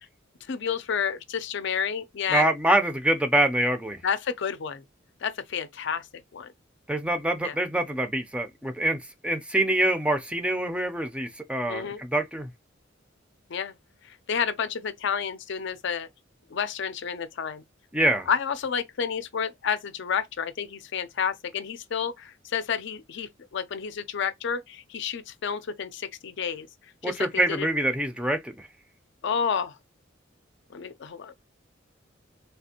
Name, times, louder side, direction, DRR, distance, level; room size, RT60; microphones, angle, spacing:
voice 1, 0.5-2.5 4.0-4.8 5.2-6.1 6.3-6.5 7.4-7.6 11.7-12.0 13.5-13.7 14.1-16.1 16.5-17.6 18.3-26.7 27.0-27.7 29.2-29.8 30.7-31.3, left 7 dB, 65° left, 0.5 m, -30 dB
voice 2, 2.3-4.0 6.9-9.0 9.2-12.5 17.9-18.3 27.0-28.5, right 1 dB, 5° right, 0.4 m, -25 dB
3.4 x 2.5 x 2.8 m
head